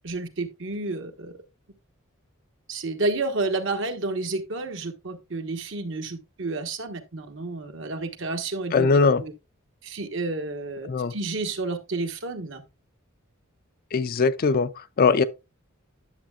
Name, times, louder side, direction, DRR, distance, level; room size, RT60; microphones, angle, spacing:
voice 1, 0.0-1.3 2.7-8.9 9.2-9.3 9.8-12.6, right 3 dB, 65° right, 1.2 m, -30 dB
voice 2, 8.7-9.2 10.9-11.1 13.9-14.7 15.0-15.2, left 4 dB, 45° left, 0.4 m, -20 dB
10.5 x 7.4 x 2.3 m
head